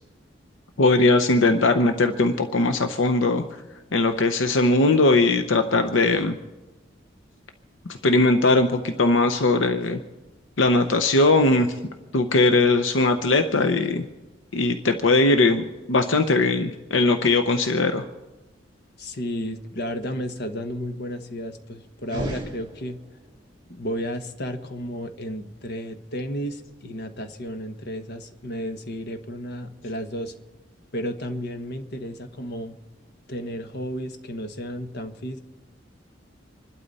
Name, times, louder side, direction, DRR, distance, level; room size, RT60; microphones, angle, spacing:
voice 1, 0.8-3.4 3.9-6.3 8.0-10.0 10.6-11.7 12.1-14.0 14.5-18.0, left 2 dB, 80° left, 6 dB, 0.8 m, -20 dB
voice 2, 19.0-23.0 23.7-30.3 30.9-32.8 33.3-35.4, equal, 60° left, 7 dB, 1.3 m, -33 dB
sound 1, 22.0-23.3, right 1 dB, 25° right, 3.1 m, -34 dB
26.5 x 12.0 x 4.1 m, 1.2 s
head